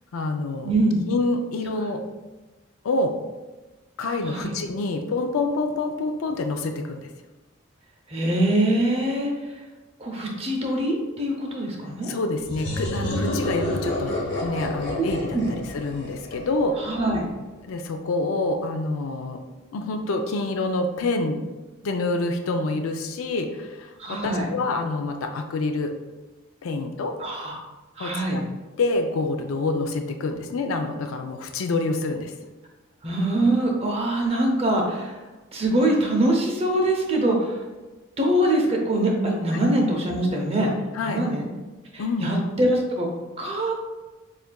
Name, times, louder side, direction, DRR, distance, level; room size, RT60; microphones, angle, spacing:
voice 1, 0.1-0.7 1.1-2.0 2.8-3.2 4.0-7.1 12.1-14.2 14.4-16.9 17.6-19.4 19.7-21.4 21.8-26.0 26.6-27.2 28.0-28.4 28.8-32.3 40.9-41.2 42.0-42.3, left 2 dB, 85° left, 6 dB, 0.4 m, -27 dB
voice 2, 0.6-1.0 4.3-4.5 8.1-9.3 10.0-12.1 15.0-15.1 15.3-15.5 16.8-17.2 24.0-24.5 27.2-27.6 28.0-28.4 33.0-35.2 35.5-37.6 38.2-40.7 41.0-41.4 41.9-43.1 43.4-43.7, right 1 dB, 30° right, 1 dB, 0.6 m, -23 dB
sound 1, 12.5-17.0, left 1 dB, 65° left, 1.2 m, -29 dB
6.9 x 2.5 x 2.2 m, 1.2 s
head